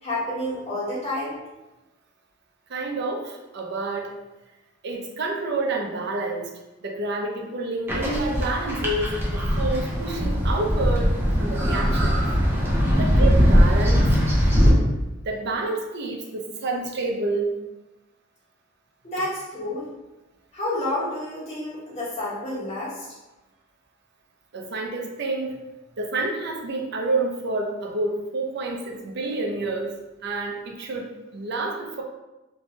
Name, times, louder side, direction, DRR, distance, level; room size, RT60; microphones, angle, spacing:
voice 1, 0.0-1.4 19.0-19.9 20.5-23.1, left 1 dB, 35° left, -10 dB, 1.2 m, -29 dB
voice 2, 2.7-4.1 4.8-6.5 6.8-12.3 13.0-14.1 15.2-17.6 24.5-25.6 26.0-29.9 30.2-32.0, right 2 dB, 60° right, 1 dB, 0.5 m, -28 dB
sound 1, 7.9-14.7, equal, 10° right, 0.6 m, -20 dB
2.6 x 2.2 x 3.0 m, 1.1 s
head